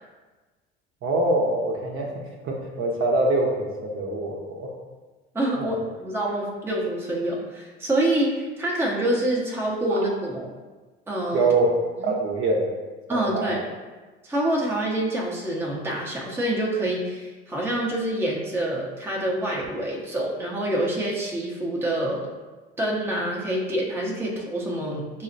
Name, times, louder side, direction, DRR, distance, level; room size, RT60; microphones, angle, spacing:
voice 1, 1.0-2.1 2.4-4.7 5.6-5.7 9.9-10.0 11.3-11.7 12.0-12.7 13.1-13.6, right 2 dB, 40° right, -1 dB, 0.8 m, -24 dB
voice 2, 5.3-10.5 11.1-11.5 12.0-12.1 13.1-13.6 14.2-22.3 22.8-25.2, right 1 dB, 5° right, -3 dB, 0.7 m, -26 dB
5.5 x 2.0 x 2.6 m, 1.3 s
hypercardioid pair, 70°, 32 cm